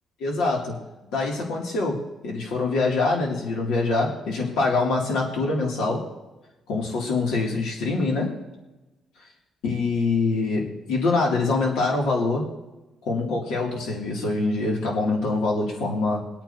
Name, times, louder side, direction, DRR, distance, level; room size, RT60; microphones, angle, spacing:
voice 1, 0.2-0.8 1.1-6.1 6.7-8.3 9.6-12.4 13.0-16.2, left 3 dB, 90° left, -2 dB, 2.5 m, -24 dB
23.0 x 9.0 x 2.8 m, 1.1 s
cardioid pair, 95°, 0 cm